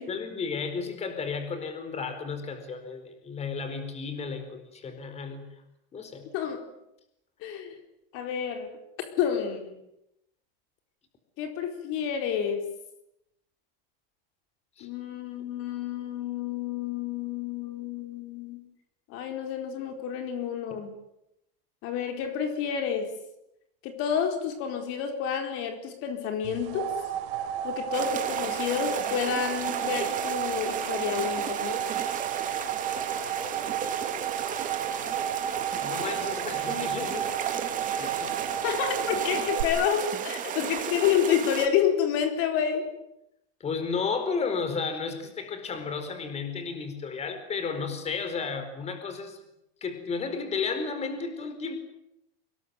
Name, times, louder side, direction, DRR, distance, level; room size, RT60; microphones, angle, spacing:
voice 1, 0.1-5.5 5.9-6.3 14.8-14.9 35.8-38.3 43.6-49.4 49.8-51.8, left 5 dB, 20° left, 8 dB, 4.5 m, -33 dB
voice 2, 7.4-7.8 8.1-8.7 9.2-9.8 11.4-12.6 14.8-18.6 19.1-20.9 21.8-23.1 23.8-26.9 27.6-31.8 38.6-42.9, left 8 dB, 50° left, 6 dB, 4.4 m, -29 dB
sound 1, 26.4-39.6, right 9 dB, 70° right, 5.3 m, -33 dB
sound 2, 27.9-41.7, right 8 dB, 25° right, 3.0 m, -34 dB
25.5 x 21.0 x 9.6 m, 0.83 s
supercardioid pair, 145°, 29 cm